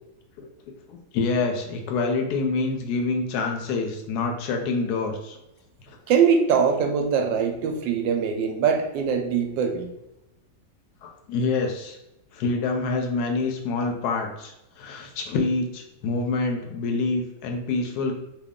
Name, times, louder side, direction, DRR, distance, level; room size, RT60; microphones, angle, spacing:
voice 1, 0.9-5.4 5.8-6.0 11.0-12.0 12.3-18.1, left 3 dB, 70° left, 3 dB, 0.9 m, -26 dB
voice 2, 6.1-9.9, right 6 dB, 75° right, 4 dB, 1.2 m, -22 dB
3.2 x 2.3 x 3.5 m, 0.90 s
omnidirectional pair, 2.1 m